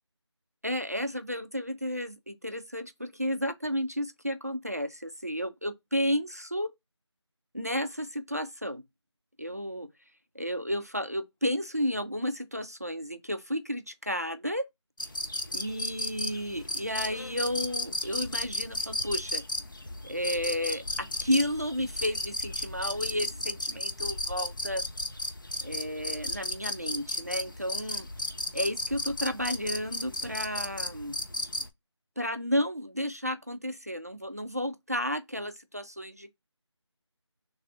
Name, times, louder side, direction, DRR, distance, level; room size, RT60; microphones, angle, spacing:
voice 1, 0.6-6.7 7.5-8.8 9.4-9.9 10.3-14.6 15.5-19.4 20.0-24.8 25.6-28.1 28.5-31.2 32.2-36.3, equal, 35° right, 0.4 m, -32 dB
sound 1, 15.0-31.7, left 1 dB, 45° left, 0.5 m, -35 dB
3.3 x 2.4 x 4.0 m
figure-of-eight pair, 175°, 15 cm